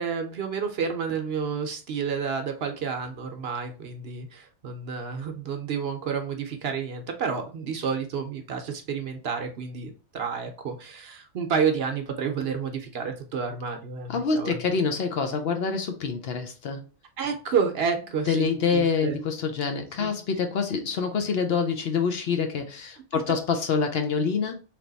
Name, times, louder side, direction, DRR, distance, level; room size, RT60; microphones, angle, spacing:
voice 1, 0.0-14.6 17.2-19.2 20.0-20.1 21.2-21.3 23.1-23.3, right 6 dB, 60° right, 0.8 m, -30 dB
voice 2, 14.1-16.8 18.3-24.6, left 5 dB, 60° left, 0.8 m, -26 dB
3.4 x 3.0 x 3.9 m
omnidirectional pair, 1.3 m